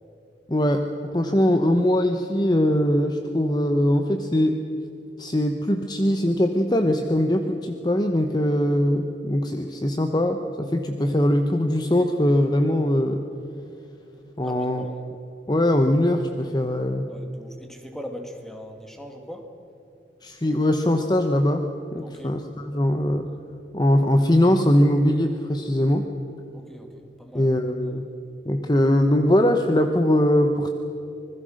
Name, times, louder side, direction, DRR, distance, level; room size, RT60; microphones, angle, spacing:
voice 1, 0.5-4.6 5.2-13.2 14.4-14.8 15.5-17.1 20.2-21.6 21.9-23.4 23.7-26.1 27.3-28.0 28.4-30.7, left 1 dB, 25° left, 5 dB, 0.9 m, -21 dB
voice 2, 14.4-15.0 17.1-19.5 22.0-22.3 26.5-27.5, equal, ahead, 3 dB, 2.2 m, -40 dB
25.5 x 20.5 x 6.5 m, 2.8 s
head